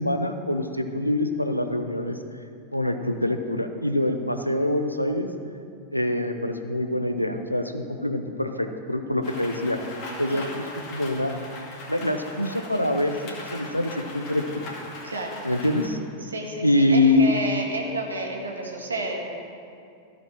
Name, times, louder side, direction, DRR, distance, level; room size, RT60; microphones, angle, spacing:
voice 1, 0.0-2.2 2.7-5.3 5.9-9.8 10.2-11.4 11.9-14.7 15.4-16.0 16.6-17.3, left 1 dB, 90° left, 7 dB, 0.6 m, -25 dB
Rain, 9.2-15.9, left 2 dB, 40° left, 2.0 m, -39 dB
voice 2, 15.0-15.4 16.2-19.2, right 2 dB, 75° right, 0 dB, 1.5 m, -31 dB
14.5 x 5.1 x 6.2 m, 2.4 s
figure-of-eight pair, 90°, 0 cm